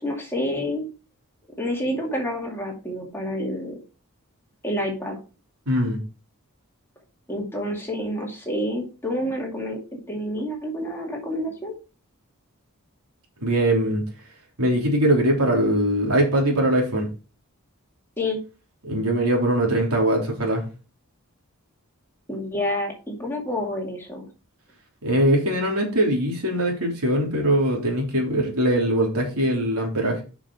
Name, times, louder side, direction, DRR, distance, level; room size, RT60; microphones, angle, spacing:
voice 1, 0.0-0.9 1.6-3.8 4.6-5.2 7.3-9.8 10.1-11.7 18.2-18.4 22.3-24.3, left 1 dB, 10° left, -1 dB, 2.3 m, -28 dB
voice 2, 5.7-6.0 13.4-14.0 14.6-17.1 18.8-20.6 25.0-30.2, right 1 dB, 80° right, 0 dB, 3.3 m, -21 dB
6.9 x 6.0 x 4.6 m, 0.33 s
head